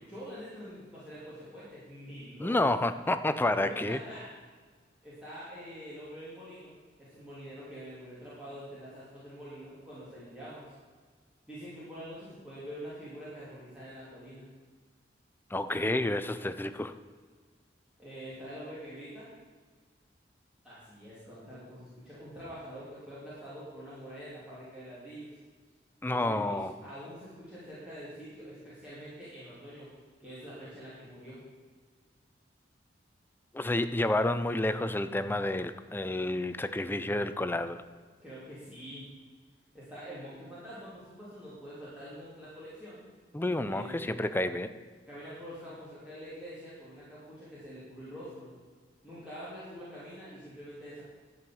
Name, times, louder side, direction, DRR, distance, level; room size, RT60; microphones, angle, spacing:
voice 1, 0.1-2.6 3.6-4.3 5.0-6.7 7.0-10.7 11.5-14.5 18.0-19.3 20.6-25.3 26.0-29.9 30.2-31.4 38.2-39.1 39.7-43.0 43.7-44.4 45.1-48.5 49.0-51.0, equal, 5° right, -11 dB, 3.0 m, -45 dB
voice 2, 2.4-4.0 15.5-16.9 26.0-26.7 33.5-37.8 43.3-44.7, left 2 dB, 10° left, 11 dB, 0.4 m, -30 dB
11.5 x 5.5 x 7.7 m, 1.5 s
head